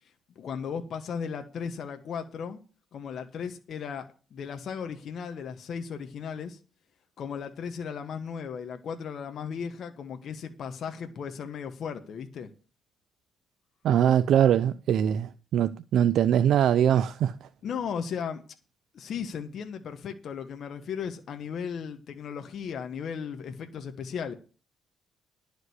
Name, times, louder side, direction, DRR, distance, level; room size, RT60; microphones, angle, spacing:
voice 1, 0.3-2.6 2.9-6.6 7.2-12.5 17.6-18.4 18.9-24.3, left 7 dB, 60° left, 1.5 m, -36 dB
voice 2, 13.8-17.5, right 9 dB, 75° right, 0.5 m, -22 dB
11.0 x 5.2 x 8.1 m
cardioid pair, 90°, 0 cm